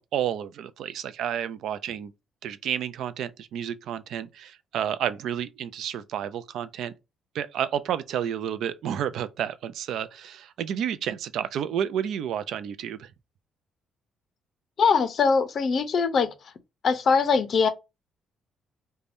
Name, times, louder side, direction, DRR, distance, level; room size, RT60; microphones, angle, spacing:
voice 1, 0.0-2.1 2.4-6.9 7.3-13.1, right 9 dB, 75° right, 0.3 m, -30 dB
voice 2, 14.8-16.5 16.8-17.7, left 5 dB, 50° left, 0.5 m, -22 dB
3.3 x 2.2 x 2.5 m
cardioid pair, 110°, 0 cm